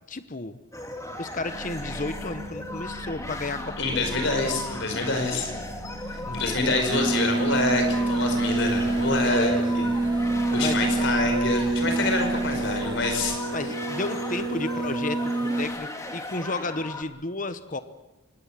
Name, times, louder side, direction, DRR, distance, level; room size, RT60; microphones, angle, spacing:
voice 1, 0.1-0.6 1.2-4.3 6.2-6.9 9.2-9.9 10.6-11.1 13.5-17.8, left 3 dB, 35° left, 12 dB, 1.0 m, -33 dB
sound 1, 0.7-17.0, left 2 dB, 15° left, 2.0 m, -37 dB
sound 2, 1.4-13.4, equal, 80° right, 2.1 m, -39 dB
voice 2, 3.8-5.5 6.1-9.8 10.5-13.4, left 2 dB, 55° left, 5 dB, 5.1 m, -26 dB
sound 3, 6.9-15.7, right 2 dB, 20° right, 2.1 m, -26 dB
25.5 x 20.0 x 7.6 m, 0.99 s
head